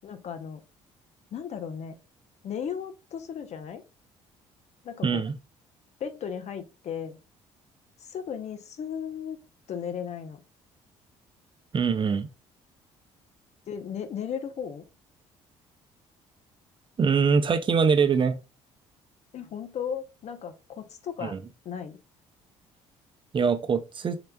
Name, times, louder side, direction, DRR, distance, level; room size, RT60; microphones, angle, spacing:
voice 1, 0.0-0.6 1.3-2.0 2.4-3.8 4.8-5.2 6.0-7.2 8.0-9.4 9.7-10.4 13.7-14.8 19.3-21.4 21.6-22.0, left 7 dB, 50° left, 0.7 m, -35 dB
voice 2, 5.0-5.3 11.7-12.3 17.0-18.4 21.2-21.4 23.3-24.2, right 5 dB, 35° right, 0.6 m, -23 dB
4.0 x 3.3 x 2.2 m
hypercardioid pair, 60°, 14 cm